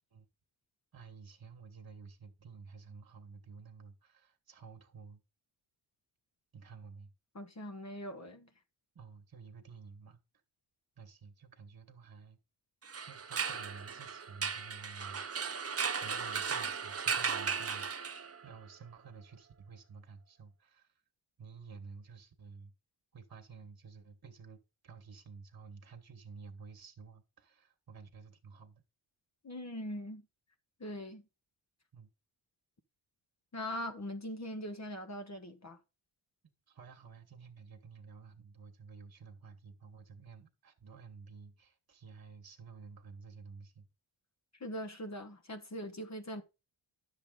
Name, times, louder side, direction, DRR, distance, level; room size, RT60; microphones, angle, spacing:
voice 1, 0.9-5.2 6.5-7.1 8.9-10.2 11.0-12.4 13.0-15.6 16.0-18.1 18.4-20.9 21.4-22.7 23.1-24.6 24.8-28.8 31.9-32.1 36.7-43.9, right 5 dB, 45° right, 1.6 m, -52 dB
voice 2, 7.3-8.5 29.4-30.3 30.8-31.2 33.5-35.8 44.6-46.4, equal, 35° left, 1.3 m, -41 dB
sound 1, 12.8-18.5, right 6 dB, 30° right, 0.7 m, -36 dB
10.0 x 6.8 x 3.9 m
cardioid pair, 60°, 49 cm